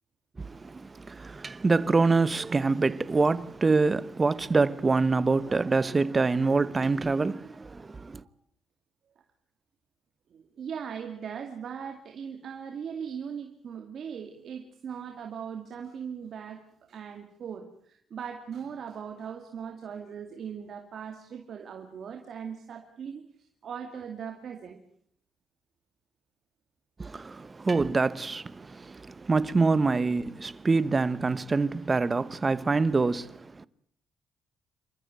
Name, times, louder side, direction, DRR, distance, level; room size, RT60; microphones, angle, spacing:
voice 1, 0.4-8.2 27.0-33.7, right 3 dB, 25° right, 1.1 m, -26 dB
voice 2, 10.3-23.2 23.6-24.8, right 7 dB, 60° right, 2.4 m, -39 dB
28.0 x 13.5 x 9.3 m
cardioid pair, 90°, 0 cm